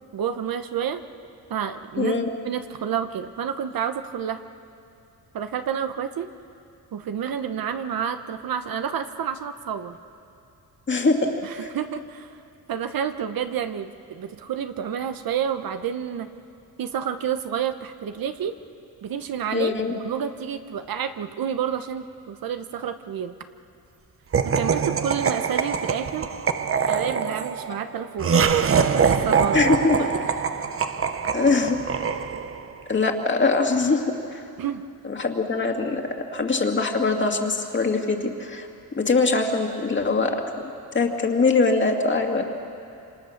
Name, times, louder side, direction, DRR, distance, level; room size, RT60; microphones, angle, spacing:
voice 1, 0.1-1.0 1.5-2.1 2.4-4.4 5.3-6.3 6.9-10.0 11.4-12.4 12.7-16.3 16.8-18.5 19.0-23.3 24.4-26.3 26.9-28.4 28.8-29.6 34.6-34.8, right 8 dB, 65° right, 9 dB, 1.0 m, -29 dB
voice 2, 2.0-2.3 10.9-11.3 11.6-11.7 19.5-19.9 29.5-30.0 31.3-31.8 32.9-34.0 34.3-34.4 35.0-36.0 36.3-38.7 39.0-40.4 40.9-42.4, left 3 dB, 30° left, 2 dB, 2.2 m, -22 dB
Laughter, 24.3-32.7, right 6 dB, 35° right, 0.8 m, -24 dB
27.0 x 26.5 x 6.6 m, 2.7 s
wide cardioid pair, 150°, 38 cm